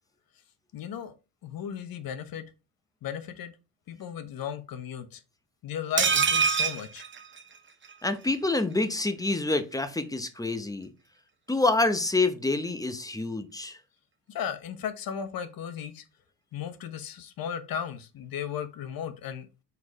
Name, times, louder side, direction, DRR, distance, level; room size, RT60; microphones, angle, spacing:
voice 1, 0.7-1.1 1.4-2.5 3.0-3.5 3.9-5.2 5.6-7.0 14.3-16.0 16.5-19.5, left 8 dB, 55° left, 1.1 m, -35 dB
sound 1, 6.0-7.9 8.2-8.3 8.6-8.7, right 6 dB, 25° right, 0.8 m, -26 dB
voice 2, 8.0-10.9 11.5-13.8, left 2 dB, 10° left, 0.8 m, -27 dB
4.7 x 4.2 x 4.7 m
cardioid pair, 105°, 42 cm